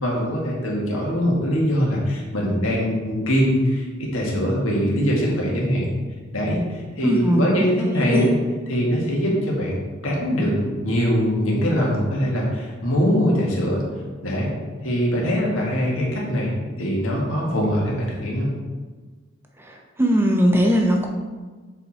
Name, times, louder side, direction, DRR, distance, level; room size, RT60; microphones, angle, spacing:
voice 1, 0.0-5.9 6.3-7.7 7.9-8.3 8.7-9.8 10.0-13.8 14.2-14.5 14.8-16.5 16.8-18.5, equal, 75° left, -3 dB, 1.9 m, -22 dB
voice 2, 7.0-7.5 7.8-8.3 19.6-21.1, equal, 10° right, 1 dB, 0.8 m, -20 dB
6.9 x 4.7 x 4.3 m, 1.4 s
head